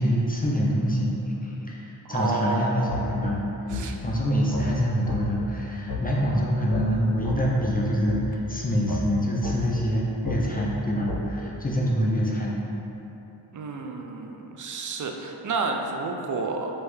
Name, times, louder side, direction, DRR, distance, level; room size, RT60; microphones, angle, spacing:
voice 1, 0.0-3.4 4.0-12.5, equal, 20° left, -4 dB, 0.5 m, -25 dB
voice 2, 2.0-3.3 3.7-4.0 13.5-16.7, right 3 dB, 45° right, 3 dB, 0.4 m, -30 dB
sound 1, 2.9-3.0 3.7-3.8 4.5-4.7 5.1-5.2 5.9-6.0 6.7-6.8 7.2-7.4 8.1-8.2 8.9-9.0 9.4-9.6 10.2-10.4 11.1-11.2, left 3 dB, 55° left, 1.5 m, -31 dB
3.2 x 2.9 x 3.1 m, 3.0 s
cardioid pair, 45°, 45 cm